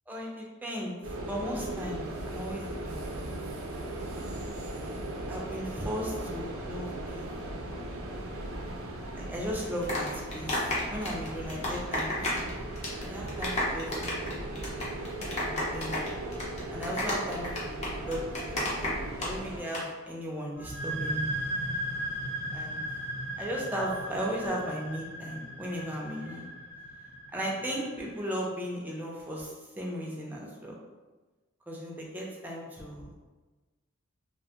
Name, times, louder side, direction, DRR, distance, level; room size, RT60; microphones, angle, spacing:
voice 1, 0.1-0.9 1.3-3.1 5.3-7.8 9.1-10.6 10.9-12.5 13.1-14.6 15.4-16.0 16.7-18.9 19.2-21.3 22.5-22.8 23.4-26.5 27.3-30.7 31.7-33.2, equal, 10° right, -3 dB, 0.4 m, -36 dB
sound 1, 1.0-19.6, right 1 dB, 75° right, 0.4 m, -38 dB
sound 2, 9.6-12.5 12.8-13.0 13.3-19.3 19.6-19.8, left 1 dB, 35° left, 0.6 m, -31 dB
sound 3, 20.5-28.0, right 1 dB, 65° left, 0.8 m, -36 dB
2.5 x 2.2 x 2.7 m, 1.2 s
head